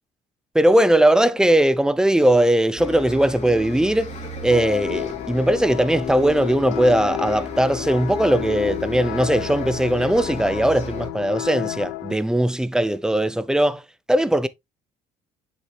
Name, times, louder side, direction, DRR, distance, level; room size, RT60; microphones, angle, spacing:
voice 1, 0.5-4.1 4.4-13.8 14.1-14.5, right 1 dB, 5° right, 0.5 m, -19 dB
Bus, 2.8-11.1, left 2 dB, 40° left, 2.6 m, -34 dB
sound 1, 4.5-12.2, left 16 dB, 85° left, 0.6 m, -32 dB
7.2 x 6.7 x 2.3 m
cardioid pair, 110°, 17 cm